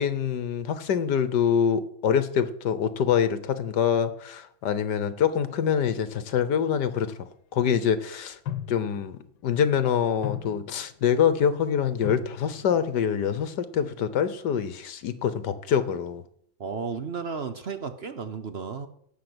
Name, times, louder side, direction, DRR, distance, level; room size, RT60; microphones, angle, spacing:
voice 1, 0.0-7.1 7.5-8.4 8.7-9.2 9.4-16.2, left 8 dB, 60° left, 13 dB, 1.4 m, -25 dB
sound 1, 7.1-7.2 8.5-9.2 9.6-9.8 10.2-11.1 12.0-12.8 13.2-13.4, left 11 dB, 75° left, 1.6 m, -36 dB
voice 2, 16.6-18.9, right 5 dB, 60° right, 10 dB, 0.6 m, -33 dB
17.5 x 5.9 x 7.9 m, 0.67 s
omnidirectional pair, 2.2 m